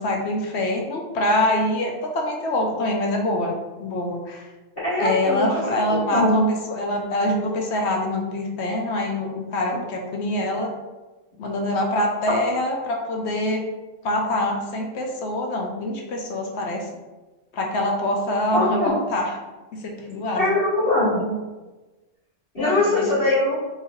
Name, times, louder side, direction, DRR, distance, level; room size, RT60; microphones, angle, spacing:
voice 1, 0.0-3.5 3.8-4.5 5.0-10.7 11.4-13.7 14.0-16.8 17.5-19.4 19.7-20.4 22.6-23.1, left 1 dB, 65° left, 1 dB, 0.8 m, -25 dB
voice 2, 4.8-5.5 5.9-6.4 18.5-18.9 20.3-21.3 22.5-23.6, left 1 dB, 45° left, -13 dB, 1.8 m, -21 dB
3.9 x 2.8 x 2.9 m, 1.2 s
omnidirectional pair, 1.3 m